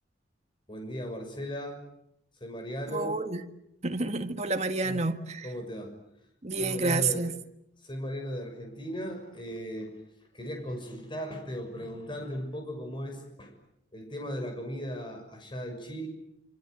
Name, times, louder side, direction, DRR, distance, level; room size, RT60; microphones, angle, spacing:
voice 1, 0.7-1.8 2.4-3.2 4.8-5.0 5.4-5.9 6.5-7.2 7.8-10.0 10.3-13.5 13.9-16.1, equal, 30° left, 6.4 m, -37 dB
voice 2, 2.9-3.4 3.8-5.5 6.4-7.3, right 3 dB, 40° right, 1.9 m, -29 dB
27.5 x 26.0 x 8.1 m
head